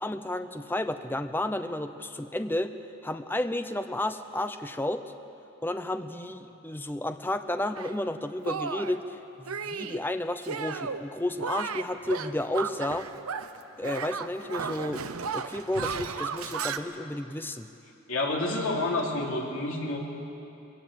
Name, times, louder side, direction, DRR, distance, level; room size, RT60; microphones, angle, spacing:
voice 1, 0.0-2.7 3.0-5.1 5.6-13.1 13.8-15.0 15.3-17.7, left 1 dB, 10° left, 9 dB, 0.6 m, -32 dB
Shatter, 7.7-7.9 8.4-9.0 9.5-10.0 10.4-11.0 11.4-13.6 13.8-16.8, right 5 dB, 75° right, 0.8 m, -34 dB
voice 2, 18.1-20.0, left 2 dB, 60° left, -2 dB, 3.0 m, -29 dB
21.5 x 16.5 x 7.7 m, 2.9 s
head